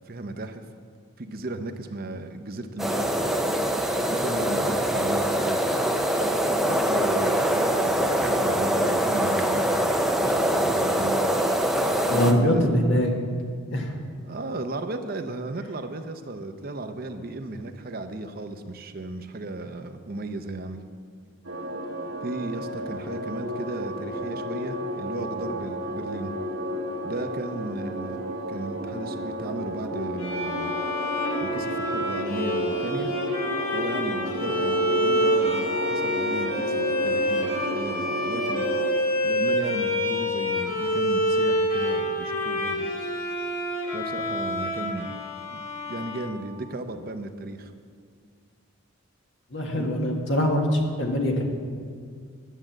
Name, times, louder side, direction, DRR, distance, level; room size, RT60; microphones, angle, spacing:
voice 1, 0.1-0.6 1.2-3.5 4.1-5.7 6.6-9.6 10.2-11.2 12.1-12.6 14.2-20.8 22.2-26.3 27.0-30.7 31.4-33.1 33.7-38.7 39.2-42.9 43.9-45.2 45.5-47.7 49.7-49.9, right 2 dB, 45° right, 7 dB, 0.6 m, -35 dB
sound 1, 2.8-12.3, right 1 dB, ahead, 0.5 m, -24 dB
voice 2, 12.1-13.1 13.7-13.9 49.5-51.5, equal, 60° left, 1 dB, 1.7 m, -23 dB
sound 2, 21.4-38.9, equal, 70° right, 1.4 m, -32 dB
Bowed string instrument, 30.2-46.7, equal, 85° left, 2.1 m, -27 dB
11.0 x 7.8 x 7.4 m, 2.1 s
head